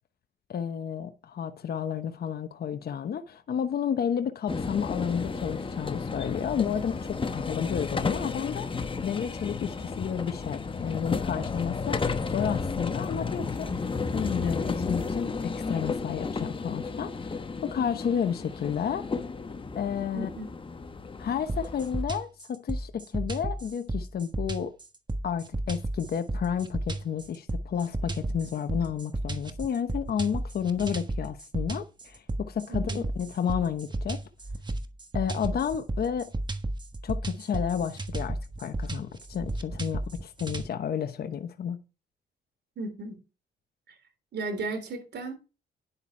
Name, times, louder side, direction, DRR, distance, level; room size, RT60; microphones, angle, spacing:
voice 1, 0.5-8.7 9.0-19.0 19.7-20.3 21.2-24.7 25.2-34.2 35.1-36.3 37.0-41.8, left 8 dB, 50° left, 1.0 m, -31 dB
sound 1, 4.5-22.0, left 4 dB, 25° left, 1.0 m, -33 dB
voice 2, 20.1-20.5 32.7-33.0 42.8-43.2 43.9-44.0 44.3-45.3, right 2 dB, 60° right, 3.5 m, -35 dB
sound 2, 21.5-40.7, right 2 dB, 20° right, 1.4 m, -33 dB
10.5 x 6.9 x 4.5 m
cardioid pair, 90°, 20 cm